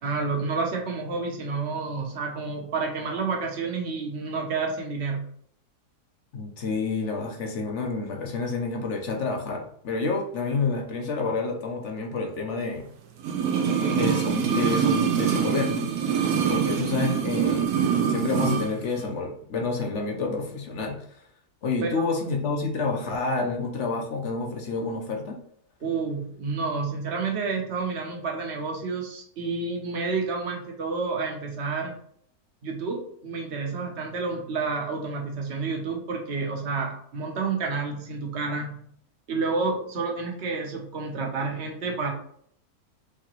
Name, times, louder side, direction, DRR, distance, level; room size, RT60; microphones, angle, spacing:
voice 1, 0.0-5.2 21.8-22.2 25.8-32.0 32.6-38.9 39.3-42.1, right 4 dB, 50° right, 1 dB, 1.1 m, -29 dB
voice 2, 6.3-12.9 13.9-17.7 18.1-21.0 21.6-25.4, left 3 dB, 55° left, 2 dB, 1.1 m, -29 dB
sound 1, 13.2-18.7 19.0-19.1, right 7 dB, 70° right, 1.1 m, -24 dB
4.9 x 3.5 x 3.0 m, 0.64 s
omnidirectional pair, 1.7 m